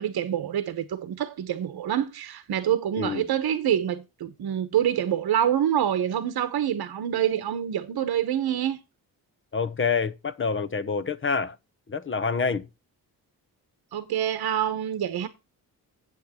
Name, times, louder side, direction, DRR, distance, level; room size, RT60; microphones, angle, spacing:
voice 1, 0.0-8.8 13.9-15.3, right 10 dB, 85° right, 1.1 m, -26 dB
voice 2, 9.5-11.5 11.9-12.7, left 5 dB, 35° left, 0.8 m, -27 dB
8.4 x 8.3 x 4.3 m
cardioid pair, 100°, 37 cm